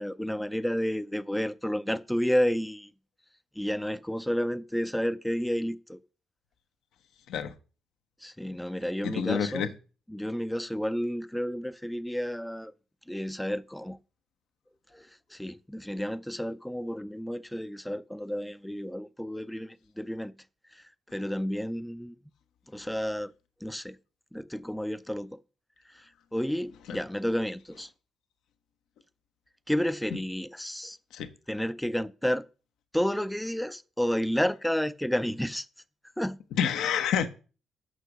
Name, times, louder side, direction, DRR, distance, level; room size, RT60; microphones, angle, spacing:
voice 1, 0.0-2.9 3.6-6.0 8.2-9.7 10.1-12.7 13.1-14.0 14.9-20.3 20.7-20.8 21.1-22.2 22.7-23.3 23.6-24.0 24.3-25.4 25.9-27.9 29.7-31.0 31.5-32.5 32.9-35.7 36.2-36.4, equal, 5° left, 0.4 m, -31 dB
voice 2, 9.0-9.7 26.9-27.0 31.1-31.3 36.6-37.3, left 8 dB, 85° left, 0.9 m, -28 dB
6.4 x 6.0 x 6.4 m
cardioid pair, 90°, 0 cm